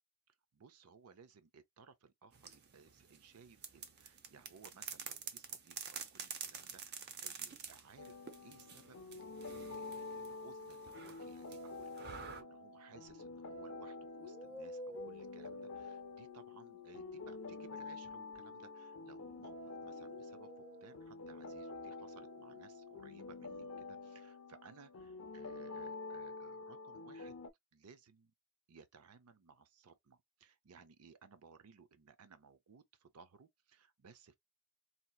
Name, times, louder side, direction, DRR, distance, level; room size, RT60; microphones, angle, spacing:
voice 1, 0.5-8.2 8.4-27.4 27.7-28.3 28.7-34.4, right 5 dB, 90° right, 0.6 m, -61 dB
sound 1, 2.3-12.4, right 6 dB, 45° right, 0.7 m, -49 dB
sound 2, 8.0-27.5, left 3 dB, 90° left, 0.6 m, -48 dB
sound 3, 13.1-13.3 14.1-19.5 19.9-23.8, left 2 dB, 30° right, 1.9 m, -54 dB
4.3 x 2.8 x 2.2 m
head